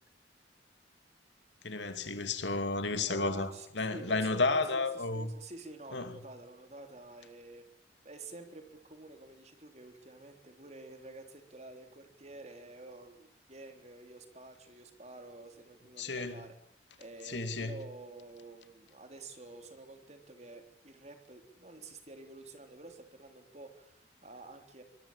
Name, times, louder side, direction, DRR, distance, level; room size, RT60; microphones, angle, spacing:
voice 1, 1.6-3.5 3.7-5.3 5.9-6.1 16.0-16.4 17.3-17.8, left 3 dB, 75° left, 2.6 m, -32 dB
voice 2, 3.0-7.7 8.0-16.6 17.0-24.8, right 2 dB, 35° right, 3.5 m, -49 dB
23.5 x 20.0 x 8.8 m
head